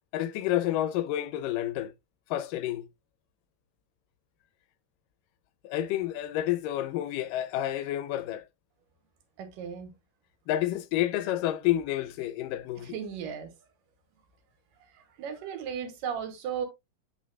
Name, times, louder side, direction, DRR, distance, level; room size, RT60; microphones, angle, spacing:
voice 1, 0.1-1.9 2.3-2.9 5.6-8.4 10.5-13.0, left 13 dB, 85° left, 2.2 m, -29 dB
voice 2, 9.4-9.9 12.8-13.5 14.9-16.7, right 7 dB, 80° right, 2.8 m, -36 dB
8.5 x 5.6 x 2.2 m
omnidirectional pair, 3.8 m